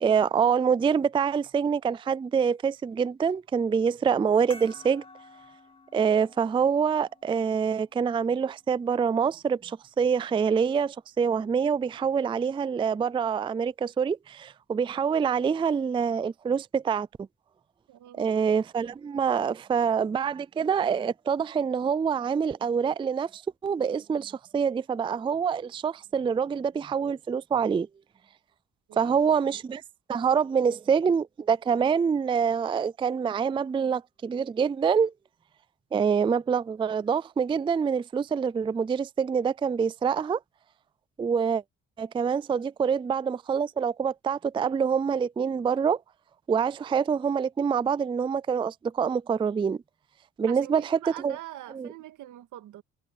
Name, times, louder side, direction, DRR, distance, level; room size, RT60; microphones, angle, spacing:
voice 1, 0.0-5.0 5.9-17.3 18.2-27.9 29.0-29.8 30.1-35.1 35.9-40.4 41.2-41.6 42.0-46.0 46.5-49.8 50.4-51.4 51.7-51.9, right 6 dB, 15° right, 0.3 m, -26 dB
sound 1, 4.5-9.6, left 2 dB, 20° left, 2.3 m, -52 dB
voice 2, 17.9-18.3 28.9-29.3 50.5-52.8, right 14 dB, 85° right, 2.0 m, -44 dB
cardioid pair, 90°, 30 cm